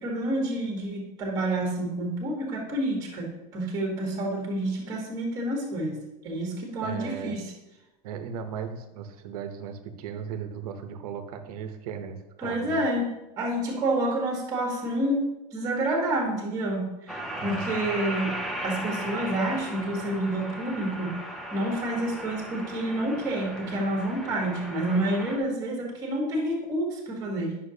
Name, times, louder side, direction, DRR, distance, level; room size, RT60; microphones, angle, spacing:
voice 1, 0.0-6.0 6.2-7.5 12.4-13.1 13.4-21.2 21.5-27.6, right 1 dB, 15° right, 0 dB, 1.2 m, -29 dB
voice 2, 6.8-7.5 8.0-12.8 17.4-17.8, right 7 dB, 65° right, 8 dB, 0.9 m, -37 dB
sound 1, 17.1-25.4, right 1 dB, ahead, 0.4 m, -36 dB
9.8 x 5.8 x 2.8 m, 1.0 s
supercardioid pair, 175°, 21 cm